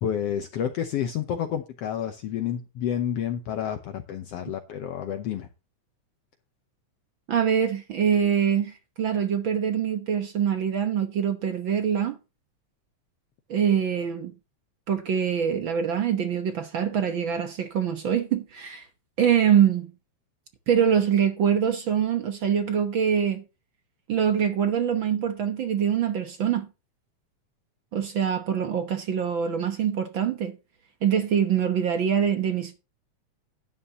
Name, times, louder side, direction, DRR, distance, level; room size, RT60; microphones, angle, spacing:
voice 1, 0.0-5.5, left 9 dB, 70° left, 1.6 m, -29 dB
voice 2, 7.3-12.2 13.5-14.3 14.9-18.9 19.2-19.9 20.7-23.4 24.1-26.7 27.9-30.5 31.0-32.8, right 8 dB, 60° right, 1.4 m, -24 dB
11.5 x 9.7 x 2.9 m
omnidirectional pair, 3.4 m